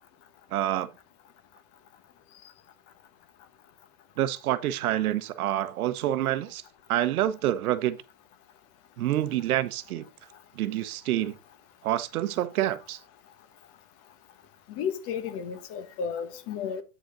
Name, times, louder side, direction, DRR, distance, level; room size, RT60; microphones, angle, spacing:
voice 1, 0.5-0.9 4.2-6.6 6.9-8.0 9.0-10.1 10.6-11.4 11.8-13.0, right 13 dB, 80° right, 0.9 m, -27 dB
voice 2, 14.7-16.8, left 7 dB, 35° left, 1.0 m, -33 dB
8.6 x 5.2 x 3.8 m
supercardioid pair, 150°, 43 cm